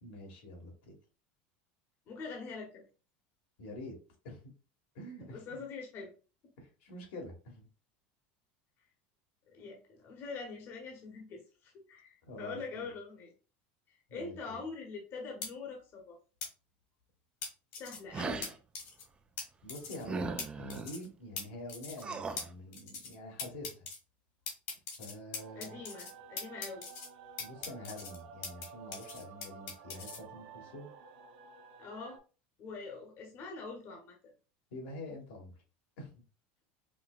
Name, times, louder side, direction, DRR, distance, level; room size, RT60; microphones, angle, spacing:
voice 1, 0.0-0.9 3.6-4.0 4.2-4.4 4.9-5.6 6.6-7.7 12.2-12.9 14.1-14.6 19.6-23.9 25.0-25.8 27.4-30.9 34.7-35.5 36.0-36.1, left 1 dB, 85° left, 1 dB, 1.5 m, -46 dB
voice 2, 2.1-2.8 5.3-6.1 9.5-13.3 13.9-16.2 17.7-18.5 25.5-26.9 31.8-32.2 32.6-34.1, left 4 dB, 45° left, 1 dB, 1.0 m, -44 dB
sound 1, 15.4-15.5 16.4-16.5 17.4-18.0 18.4-18.5 18.7-19.0 19.4-19.5 19.7-20.0 20.4-20.5 20.7-21.1 21.4-21.5 21.7-22.0 22.4-22.5 22.7-23.1 23.4-24.0 24.5-26.1 26.4-27.1 27.4-28.7 28.9-30.2, left 5 dB, 65° left, 1.6 m, -41 dB
sound 2, 18.1-18.5 20.0-20.9 22.0-22.5, right 4 dB, 20° right, 0.4 m, -37 dB
sound 3, 25.4-32.2, right 7 dB, 70° right, 0.7 m, -52 dB
5.2 x 2.2 x 2.4 m, 0.35 s
supercardioid pair, 125°, 6 cm